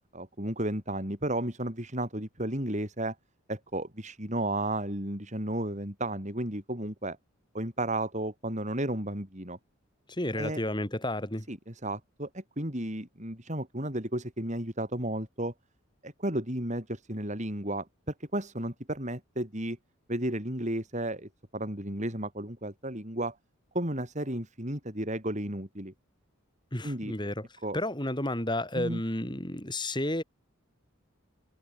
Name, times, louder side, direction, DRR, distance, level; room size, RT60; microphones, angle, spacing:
voice 1, 0.1-3.2 3.5-7.2 7.5-9.6 10.4-10.6 11.5-15.5 16.0-17.9 18.2-19.8 20.1-23.4 23.7-25.9 26.8-27.1 27.6-27.8 28.7-29.0, right 1 dB, 35° right, 5.7 m, -33 dB
voice 2, 10.2-11.4 26.7-27.5 27.7-30.2, left 1 dB, 20° left, 5.0 m, -31 dB
head